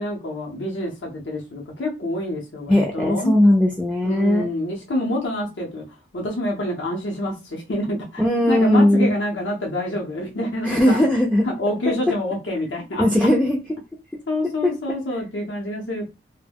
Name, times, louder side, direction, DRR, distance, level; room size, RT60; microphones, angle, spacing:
voice 1, 0.0-3.4 4.0-5.8 6.1-11.0 11.4-13.3 14.3-16.0, left 1 dB, 75° left, 0.7 m, -27 dB
voice 2, 2.7-4.5 8.2-9.1 10.6-11.5 13.0-13.6 14.6-14.7, left 1 dB, 5° left, 0.3 m, -18 dB
2.2 x 2.1 x 3.4 m
head